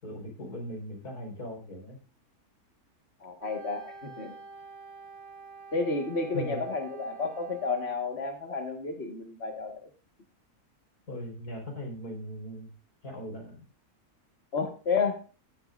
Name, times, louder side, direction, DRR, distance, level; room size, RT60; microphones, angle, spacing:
voice 1, 0.0-2.0 6.3-6.6 11.1-12.7 13.0-13.6, left 1 dB, 85° left, 1 dB, 5.2 m, -39 dB
voice 2, 3.2-4.3 5.7-9.9 14.5-15.2, left 4 dB, 45° left, 4 dB, 1.9 m, -31 dB
Wind instrument woodwind instrument, 3.4-8.2, right 4 dB, 65° right, 1.9 m, -48 dB
16.0 x 12.0 x 2.5 m, 0.34 s
omnidirectional pair, 1.6 m